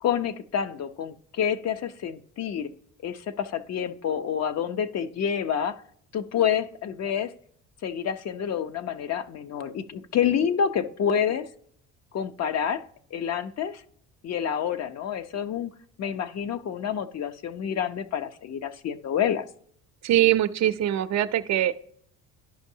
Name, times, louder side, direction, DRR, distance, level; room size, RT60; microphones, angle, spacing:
voice 1, 0.0-2.7 3.0-5.8 6.1-7.3 7.8-11.5 12.1-12.8 13.1-13.8 14.2-15.7 16.0-19.4, left 8 dB, 50° left, 0.6 m, -28 dB
voice 2, 20.0-21.7, right 12 dB, 55° right, 0.5 m, -22 dB
11.5 x 5.2 x 2.7 m
supercardioid pair, 75°, 34 cm